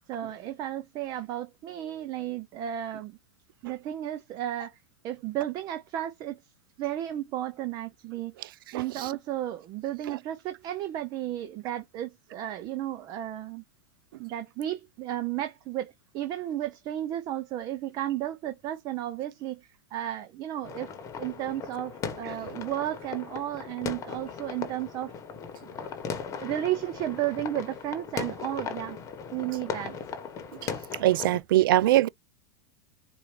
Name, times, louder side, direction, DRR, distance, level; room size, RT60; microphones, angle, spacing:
voice 1, 0.1-3.2 3.6-4.7 5.0-6.4 6.8-8.3 8.7-13.6 14.2-19.6 19.9-20.9 21.2-25.1 26.4-29.0 29.3-30.0, right 12 dB, 35° right, 0.6 m, -33 dB
voice 2, 8.7-9.1 31.0-32.1, right 15 dB, 80° right, 0.4 m, -22 dB
sound 1, 20.6-31.4, left 6 dB, 25° left, 1.0 m, -38 dB
4.6 x 2.5 x 3.2 m
supercardioid pair, 135°, 11 cm